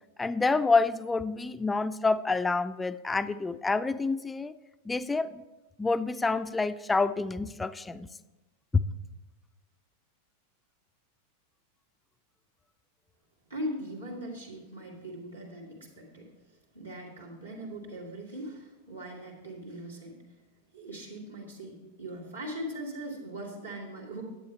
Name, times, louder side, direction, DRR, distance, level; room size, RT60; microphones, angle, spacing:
voice 1, 0.2-4.5 4.9-5.4 5.8-8.1 8.7-8.8, left 3 dB, 10° left, 14 dB, 0.3 m, -27 dB
voice 2, 13.5-16.3 16.7-20.2 20.7-24.2, right 1 dB, 85° right, -6 dB, 2.4 m, -40 dB
10.5 x 8.5 x 4.4 m, 1.1 s
figure-of-eight pair, 90°, 0 cm